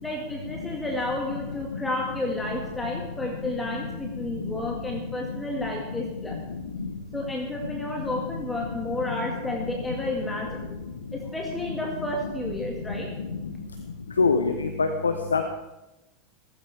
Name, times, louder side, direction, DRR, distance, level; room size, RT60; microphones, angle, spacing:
voice 1, 0.0-6.4 7.1-10.7 11.1-13.1, left 2 dB, 10° left, -1 dB, 2.0 m, -31 dB
voice 2, 14.2-15.4, left 4 dB, 75° left, 7 dB, 0.9 m, -23 dB
16.5 x 15.0 x 3.5 m, 1.0 s
figure-of-eight pair, 85°, 0 cm